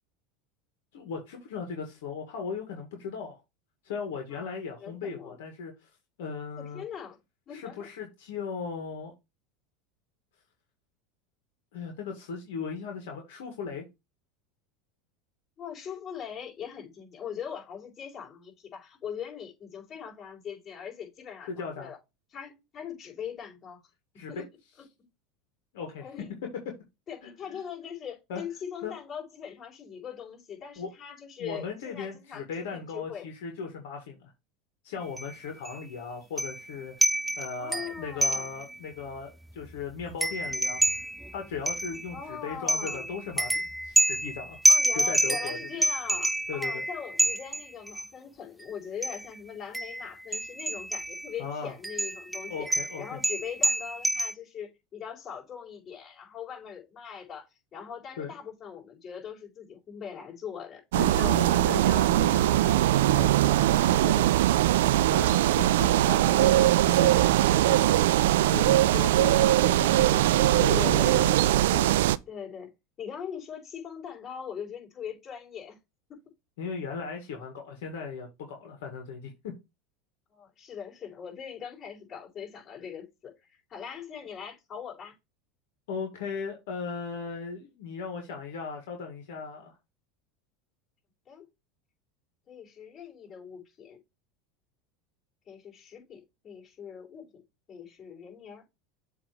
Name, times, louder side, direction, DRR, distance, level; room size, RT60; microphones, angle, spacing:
voice 1, 0.9-3.4 3.8-5.9 6.2-6.8 7.5-9.1 11.7-13.8 21.5-21.9 24.1-24.4 25.7-26.1 27.2-27.6 28.3-28.4 28.8-28.9 30.8-30.9 31.4-34.3 34.8-37.1 37.4-40.8 41.3-44.6 44.9-45.6 46.5-46.8 51.4-51.7 52.5-53.2 58.2-58.3 60.9-64.3 65.1-68.0 68.5-72.0 76.6-79.5 85.9-89.7, left 5 dB, 80° left, 1.7 m, -37 dB
voice 2, 4.8-5.4 6.6-7.2 7.5-7.9 15.6-22.0 22.3-23.8 24.3-24.5 26.0-26.3 27.1-33.3 37.6-38.5 42.1-43.1 44.7-61.4 70.4-71.6 72.3-72.7 73.0-75.8 76.1-76.2 80.3-85.1 91.3-91.5 92.5-94.0 95.5-97.4 97.7-98.6, left 8 dB, 35° left, 4.5 m, -41 dB
sound 1, 35.2-35.3 35.7-35.8 36.4-36.7 37.0-38.8 39.2-39.3 39.5-42.3 42.7-48.1 49.0-49.3 49.7-51.3 51.8-54.3, right 1 dB, 5° right, 0.4 m, -28 dB
sound 2, 60.9-72.2, right 14 dB, 85° right, 0.3 m, -21 dB
7.4 x 3.1 x 4.8 m
supercardioid pair, 115°, 0 cm